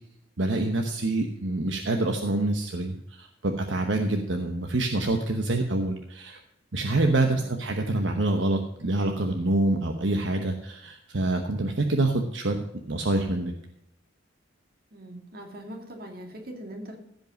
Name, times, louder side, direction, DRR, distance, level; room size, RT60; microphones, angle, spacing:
voice 1, 0.4-6.4 6.7-13.5, right 2 dB, 75° right, 4 dB, 1.0 m, -26 dB
voice 2, 14.9-17.0, right 1 dB, 50° right, 2 dB, 2.4 m, -41 dB
15.5 x 5.4 x 5.3 m, 0.81 s
head